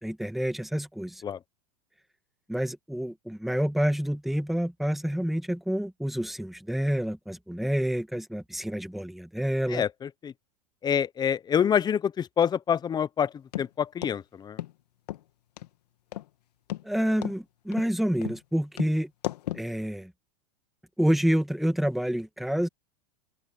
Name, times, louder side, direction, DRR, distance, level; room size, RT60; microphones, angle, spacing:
voice 1, 0.0-1.2 2.5-9.8 16.8-19.1 19.5-20.1 21.0-22.7, equal, ahead, 1.6 m, -28 dB
voice 2, 9.7-10.3 10.8-14.6, left 8 dB, 20° left, 0.8 m, -27 dB
sound 1, 13.5-13.7 14.0-14.2 14.6-14.7 15.1-15.2 15.6-15.7 16.1-16.3 16.7-16.8 17.2-17.4 17.7-17.9 18.2-18.4 18.8-18.9 19.2-19.6, left 14 dB, 80° left, 2.0 m, -34 dB
supercardioid pair, 120°, 20 cm